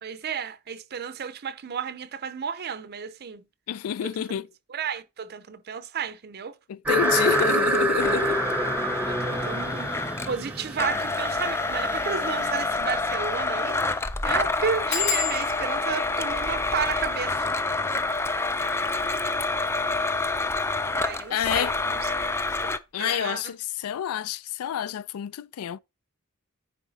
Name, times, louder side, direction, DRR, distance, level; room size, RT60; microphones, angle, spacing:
voice 1, 0.0-3.4 4.0-4.3 4.7-6.5 9.1-9.9 10.3-17.5 20.9-22.3 23.0-23.5, right 6 dB, 45° right, 0.5 m, -32 dB
voice 2, 3.7-4.5 6.7-8.4 21.3-21.7 22.9-25.8, left 9 dB, 80° left, 0.3 m, -28 dB
sound 1, 6.9-12.7, right 1 dB, 5° right, 0.8 m, -27 dB
Domestic sounds home sounds, 7.0-10.4 10.8-22.8, left 3 dB, 10° left, 0.4 m, -28 dB
sound 2, 11.8-11.9 12.3-12.4 12.7-12.8 13.3-13.6 13.8-13.9 14.9-20.2 20.9-21.4 21.7-22.0 22.3-22.4, left 8 dB, 50° left, 3.6 m, -35 dB
9.6 x 3.5 x 4.0 m
head